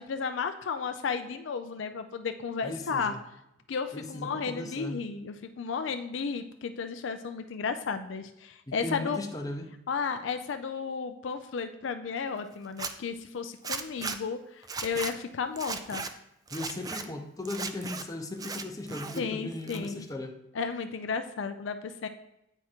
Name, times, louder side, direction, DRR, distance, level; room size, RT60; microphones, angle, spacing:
voice 1, 0.0-3.1 3.7-9.2 9.9-16.0 19.2-20.0 20.5-22.1, left 5 dB, 70° left, 8 dB, 0.4 m, -33 dB
voice 2, 2.6-3.2 3.9-5.0 8.7-9.7 16.5-20.3, left 2 dB, 20° left, 3 dB, 0.7 m, -37 dB
Zipper (clothing), 12.6-12.9 13.6-14.2 14.6-15.1 15.6-16.1 16.5-17.0 17.5-18.0 18.4-19.2 19.5-20.1, right 4 dB, 20° right, 0.3 m, -36 dB
8.9 x 3.6 x 4.4 m, 0.85 s
head